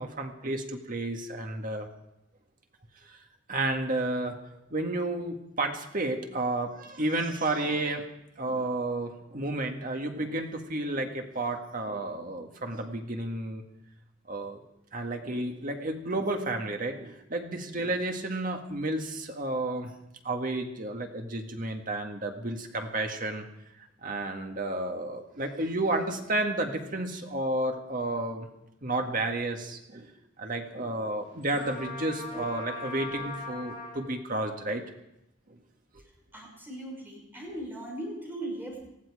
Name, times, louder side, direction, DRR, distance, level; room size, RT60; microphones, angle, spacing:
voice 1, 0.0-1.9 3.1-3.2 3.5-4.4 4.7-8.0 8.4-13.6 14.3-14.6 14.9-19.9 20.2-23.5 23.8-28.5 28.8-30.1 30.4-34.8 35.5-35.6, right 2 dB, 45° right, 4 dB, 1.8 m, -31 dB
Trumpet, 31.6-34.1, left 2 dB, 30° left, 7.2 m, -39 dB
voice 2, 36.3-38.8, right 1 dB, 10° right, -2 dB, 6.0 m, -38 dB
19.5 x 14.5 x 4.9 m, 0.86 s
head